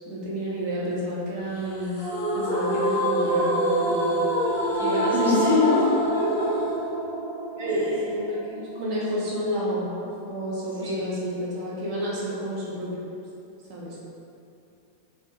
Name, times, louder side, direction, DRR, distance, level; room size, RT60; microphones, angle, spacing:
voice 1, 0.1-2.0 2.3-4.2 4.6-4.7 5.1-5.4 7.5-13.0 13.7-14.0, equal, 45° right, -7 dB, 0.5 m, -30 dB
sound 1, 1.9-9.0, right 1 dB, 45° left, 0.8 m, -26 dB
voice 2, 4.7-6.6 7.7-7.9 10.7-11.1, left 2 dB, 85° right, -9 dB, 0.7 m, -26 dB
2.6 x 2.6 x 2.2 m, 2.6 s
figure-of-eight pair, 90°, 0 cm